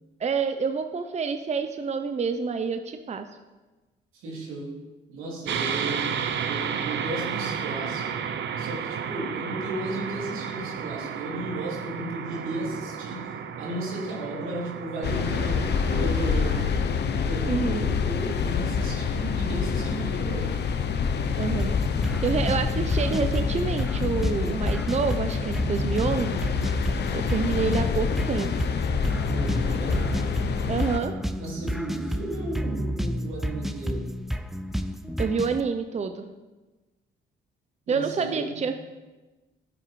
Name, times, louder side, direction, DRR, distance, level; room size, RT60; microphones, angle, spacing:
voice 1, 0.2-3.3 17.5-17.9 21.3-21.7 22.2-26.4 27.1-28.5 30.7-31.1 35.2-36.3 37.9-38.8, right 5 dB, 35° right, 7 dB, 0.7 m, -27 dB
voice 2, 4.1-4.8 5.1-8.3 8.6-16.8 17.1-20.5 29.2-30.3 31.4-34.1 37.9-38.7, right 1 dB, 85° right, -2 dB, 3.3 m, -34 dB
sound 1, 5.5-16.7, right 7 dB, 65° right, 0.9 m, -32 dB
sound 2, 15.0-31.0, left 6 dB, 60° left, 1.0 m, -27 dB
sound 3, 21.6-35.6, equal, ahead, 0.7 m, -31 dB
12.0 x 9.9 x 4.8 m, 1.2 s
cardioid pair, 90°, 20 cm